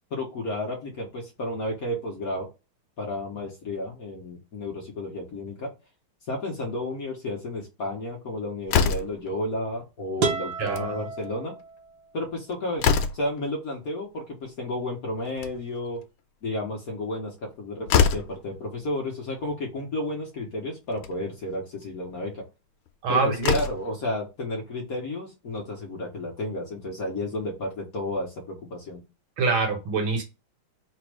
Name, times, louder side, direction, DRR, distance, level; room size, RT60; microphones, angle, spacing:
voice 1, 0.1-2.5 3.0-5.7 6.3-11.5 12.1-12.9 13.1-16.0 16.4-22.4 23.1-29.0, left 1 dB, 50° left, -1 dB, 1.3 m, -32 dB
Slam, 8.7-9.3 10.5-10.9 11.2-11.3 11.6-11.7 12.3-13.4 15.1-15.8 17.4-17.5 17.9-18.4 19.5-19.6 20.0-20.1 20.9-21.2 22.9-23.0 23.3-23.9, left 7 dB, 90° left, 1.5 m, -24 dB
sound 1, 10.2-12.1, right 4 dB, 60° right, 1.2 m, -31 dB
voice 2, 10.6-11.0 23.0-23.6 29.4-30.2, right 4 dB, 75° right, 3 dB, 2.0 m, -24 dB
4.2 x 2.4 x 4.7 m, 0.27 s
omnidirectional pair, 2.2 m